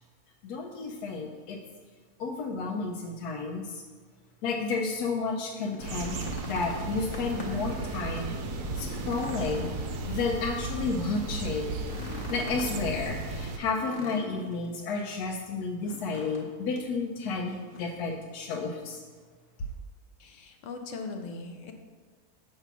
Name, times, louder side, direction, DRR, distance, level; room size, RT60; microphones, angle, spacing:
voice 1, 0.4-1.6 2.2-3.8 4.4-8.3 8.7-9.7 10.1-11.8 12.0-19.0, left 4 dB, 85° left, 0 dB, 1.1 m, -32 dB
sound 1, 5.5-7.7 8.1-8.2 8.6-10.5 11.8-12.8 13.7-14.7 15.8-16.5 16.7-16.9 17.5-18.0 19.2-19.3, left 1 dB, 30° left, 0.7 m, -43 dB
sound 2, 5.8-13.6, right 3 dB, 70° right, 1.0 m, -35 dB
sound 3, 7.6-13.1, equal, 50° left, 1.4 m, -47 dB
voice 2, 20.2-21.7, left 3 dB, 65° left, 5 dB, 0.8 m, -39 dB
6.8 x 3.4 x 5.9 m, 1.5 s
omnidirectional pair, 1.6 m